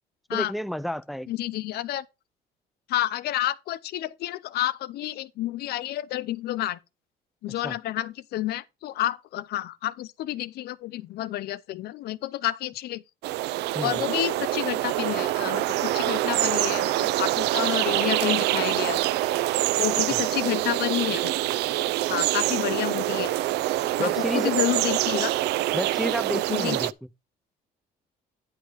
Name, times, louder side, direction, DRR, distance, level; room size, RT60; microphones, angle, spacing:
voice 1, 0.3-1.3 7.6-7.8 13.7-14.0 20.1-20.2 24.0-24.5 25.7-27.1, equal, ahead, 0.4 m, -30 dB
voice 2, 1.3-2.0 2.9-6.8 7.4-13.0 13.8-19.1 19.8-21.3 22.1-23.3 24.0-25.3 26.3-26.8, left 14 dB, 70° left, 0.6 m, -29 dB
sound 1, 13.2-26.9, right 16 dB, 80° right, 0.4 m, -25 dB
10.0 x 5.7 x 4.7 m
cardioid pair, 110°, 17 cm